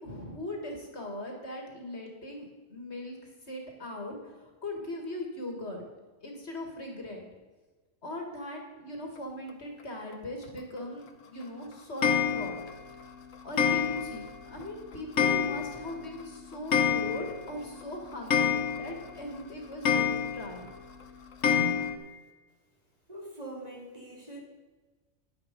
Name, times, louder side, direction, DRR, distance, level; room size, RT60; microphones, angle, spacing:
voice 1, 0.0-5.9 6.2-7.3 8.0-12.6 13.4-20.7 21.6-21.8, left 1 dB, 50° left, 2 dB, 2.3 m, -40 dB
Clock, 12.0-12.7 13.6-14.3 14.6-14.7 15.2-15.9 16.2-16.3 16.5-17.5 17.8-17.9 18.3-19.1 19.9-20.6 21.4-22.0, left 7 dB, 65° left, 1.3 m, -27 dB
voice 2, 23.1-24.4, right 1 dB, 30° right, -2 dB, 2.3 m, -43 dB
10.5 x 9.9 x 5.2 m, 1.3 s
omnidirectional pair, 1.5 m